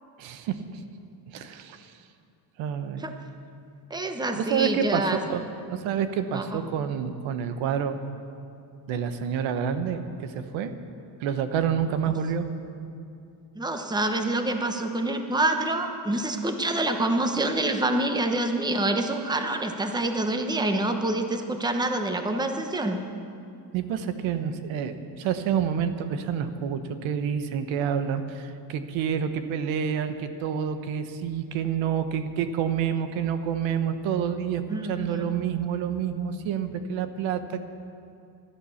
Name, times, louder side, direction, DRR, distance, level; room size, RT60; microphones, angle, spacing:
voice 1, 0.2-0.8 1.3-1.9 2.6-3.1 4.3-5.4 5.7-8.0 8.9-10.7 11.2-12.5 23.7-37.6, right 8 dB, 85° right, 9 dB, 1.1 m, -28 dB
voice 2, 3.9-5.2 6.3-6.6 13.5-23.0 34.7-35.2, right 2 dB, 10° right, 5 dB, 1.1 m, -26 dB
15.5 x 11.5 x 7.1 m, 2.6 s
cardioid pair, 120°, 45 cm